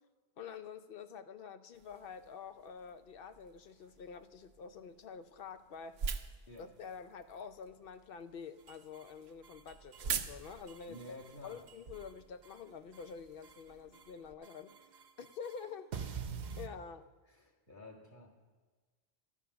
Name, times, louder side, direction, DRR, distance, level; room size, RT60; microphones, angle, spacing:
voice 1, 0.4-6.0 6.5-11.2 11.4-14.7 15.2-15.9 16.6-17.1, left 6 dB, 65° left, 11 dB, 0.8 m, -48 dB
sound 1, 1.7-14.4, right 6 dB, 80° right, 0.9 m, -46 dB
sound 2, 8.6-9.1 9.4-10.1 10.4-12.1 12.4-13.1 13.4-14.1 14.4-16.7, right 6 dB, 50° right, 0.7 m, -47 dB
voice 2, 10.9-11.6 17.3-18.3, left 1 dB, 50° left, -1 dB, 1.8 m, -51 dB
12.0 x 7.2 x 6.9 m, 1.4 s
omnidirectional pair, 1.0 m